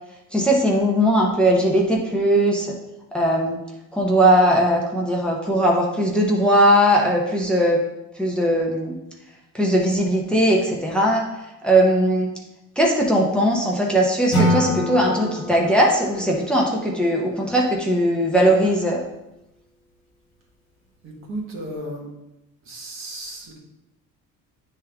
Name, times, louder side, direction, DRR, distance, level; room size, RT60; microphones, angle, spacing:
voice 1, 0.3-2.7 3.1-3.6 3.9-7.8 8.2-8.9 9.5-11.3 11.6-12.3 12.8-19.0, right 1 dB, 5° left, -2 dB, 0.6 m, -19 dB
Acoustic guitar / Strum, 14.3-17.5, equal, 40° left, 1.9 m, -26 dB
voice 2, 21.0-22.1 22.6-23.6, right 1 dB, 40° right, -1 dB, 1.5 m, -34 dB
9.1 x 3.6 x 3.4 m, 0.91 s
cardioid pair, 180°, 31 cm